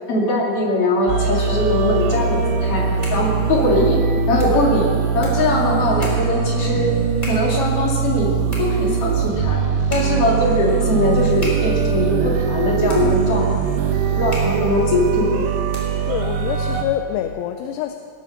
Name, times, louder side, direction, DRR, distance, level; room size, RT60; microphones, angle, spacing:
voice 1, 0.1-2.8 3.1-4.0 4.3-4.9 5.1-6.9 7.2-8.3 8.6-9.6 9.9-13.5 14.2-15.3, left 1 dB, 40° left, -3 dB, 2.9 m, -20 dB
sound 1, 1.1-16.8, right 6 dB, 75° right, 2.8 m, -21 dB
sound 2, 2.8-16.2, left 1 dB, 15° left, 2.7 m, -39 dB
voice 2, 16.1-17.9, left 11 dB, 85° left, 6 dB, 2.6 m, -26 dB
18.0 x 7.9 x 6.5 m, 2.1 s
omnidirectional pair, 4.8 m